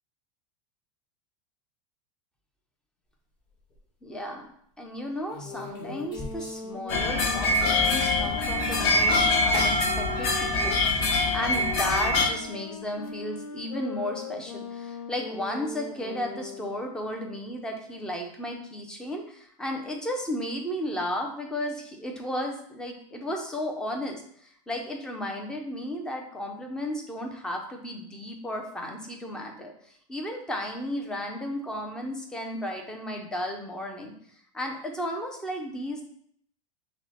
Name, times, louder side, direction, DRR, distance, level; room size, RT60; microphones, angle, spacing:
sound 1, 3.4-3.8 5.3-6.7 7.0-7.1 7.4-7.5 8.9-10.0 11.8-11.9 12.1-12.7, left 2 dB, 25° left, 1.1 m, -39 dB
voice 1, 4.0-4.5 4.8-34.1 34.5-36.0, left 1 dB, 5° left, 2 dB, 0.4 m, -34 dB
sound 2, 5.3-10.8 11.4-16.7, left 5 dB, 90° left, 0.7 m, -39 dB
sound 3, 6.9-12.3, left 2 dB, 45° left, 0.8 m, -24 dB
5.9 x 2.0 x 4.2 m, 0.65 s
supercardioid pair, 165°, 18 cm